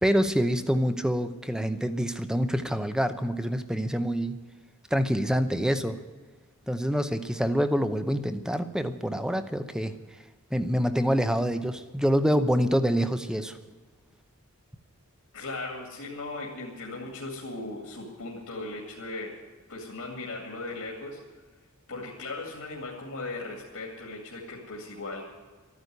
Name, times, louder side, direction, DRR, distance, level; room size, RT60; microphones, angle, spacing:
voice 1, 0.0-4.4 4.9-6.0 6.7-9.9 10.5-13.6, equal, 5° right, 10 dB, 0.7 m, -26 dB
voice 2, 15.3-19.3 19.7-21.2 21.9-25.2, left 2 dB, 65° left, -2 dB, 2.4 m, -37 dB
13.0 x 9.8 x 9.3 m, 1.3 s
head